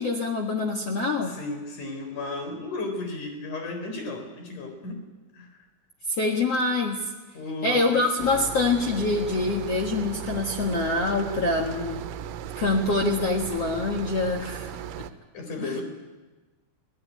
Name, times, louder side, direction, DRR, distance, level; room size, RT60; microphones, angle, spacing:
voice 1, 0.0-1.3 6.1-7.1 7.6-12.0 12.6-14.7 15.6-15.7, left 3 dB, 65° left, 1 dB, 1.5 m, -25 dB
voice 2, 1.2-5.0 5.3-5.5 7.3-8.0 15.3-15.8, left 2 dB, 45° left, 4 dB, 5.3 m, -34 dB
sound 1, 8.2-15.1, right 9 dB, 85° right, 3.3 m, -37 dB
24.5 x 18.0 x 9.4 m, 1.2 s
omnidirectional pair, 5.3 m